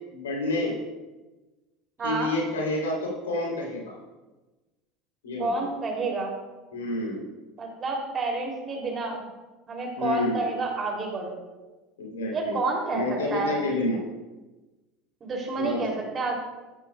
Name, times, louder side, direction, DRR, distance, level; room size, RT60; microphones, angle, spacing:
voice 1, 0.1-0.7 2.0-3.9 5.2-5.7 6.7-7.3 10.0-10.4 12.0-12.6 12.9-14.0 15.6-15.8, left 2 dB, 75° left, -2 dB, 3.5 m, -29 dB
voice 2, 2.0-2.3 5.4-6.3 7.6-9.2 9.7-11.3 12.3-13.0 13.3-13.5 15.2-16.4, right 3 dB, 30° right, 0 dB, 3.2 m, -29 dB
14.0 x 10.5 x 2.4 m, 1.1 s
figure-of-eight pair, 70°, 0 cm